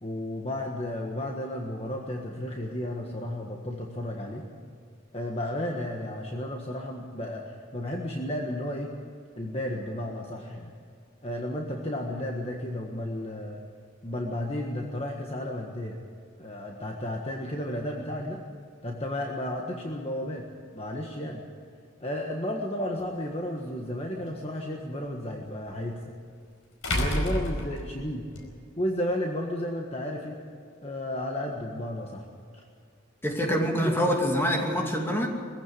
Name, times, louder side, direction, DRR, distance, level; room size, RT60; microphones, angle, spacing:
voice 1, 0.0-4.5 5.1-8.9 9.4-10.7 11.2-13.6 14.0-16.0 16.4-18.4 18.8-20.5 20.7-21.4 22.0-26.0 26.9-28.3 28.8-30.4 30.8-32.2 32.5-32.6 33.6-33.9, left 1 dB, 30° left, 0 dB, 1.5 m, -33 dB
sound 1, 23.0-23.1 25.7-25.8 26.8-28.4, left 1 dB, 85° left, 4.9 m, -29 dB
voice 2, 33.2-35.3, equal, 10° left, 1 dB, 2.6 m, -25 dB
22.0 x 15.5 x 8.4 m, 2.3 s
head